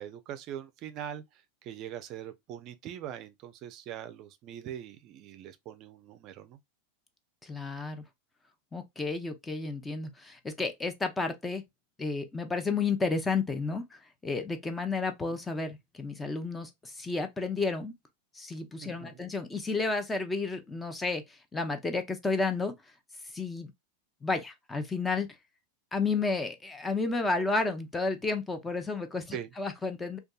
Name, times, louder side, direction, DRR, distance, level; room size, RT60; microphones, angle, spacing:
voice 1, 0.0-6.6 18.8-19.2 29.3-29.5, right 10 dB, 45° right, 0.4 m, -42 dB
voice 2, 7.4-8.0 8.7-11.6 12.0-17.9 18.3-22.7 23.3-23.7 24.2-25.3 25.9-30.2, left 3 dB, 15° left, 0.5 m, -32 dB
2.6 x 2.3 x 2.2 m
hypercardioid pair, 110°, 0 cm